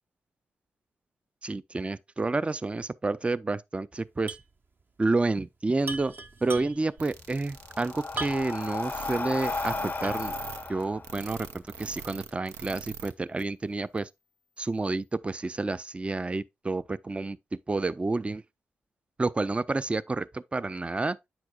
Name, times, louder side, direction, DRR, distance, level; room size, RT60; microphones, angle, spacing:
voice 1, 1.4-4.4 5.0-6.1 6.4-10.3 10.7-14.1 14.6-17.4 17.7-18.4 19.2-21.2, right 3 dB, 25° right, 0.4 m, -29 dB
sound 1, 4.3-4.5 4.8-4.9 5.8-7.0 8.2-8.7 9.2-9.3 10.0-10.4, right 3 dB, 45° right, 0.8 m, -37 dB
sound 2, 7.0-13.1 13.4-13.5 14.0-14.1, right 6 dB, 90° right, 0.5 m, -42 dB
Breathing, 7.1-11.9, left 4 dB, 35° left, 0.5 m, -34 dB
7.9 x 5.9 x 2.3 m
supercardioid pair, 40°, 5 cm